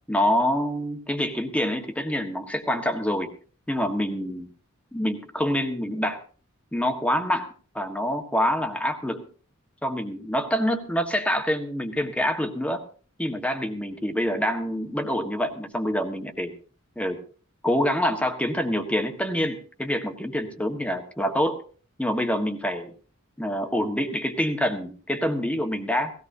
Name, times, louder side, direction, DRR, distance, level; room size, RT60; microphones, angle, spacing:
voice 1, 0.1-3.3 3.7-4.5 4.9-6.2 6.7-7.5 7.7-9.2 9.8-12.8 13.2-16.5 17.0-17.2 17.6-21.6 22.0-22.9 23.4-26.1, equal, 5° left, 5 dB, 1.4 m, -26 dB
18.5 x 16.5 x 2.7 m, 0.40 s
head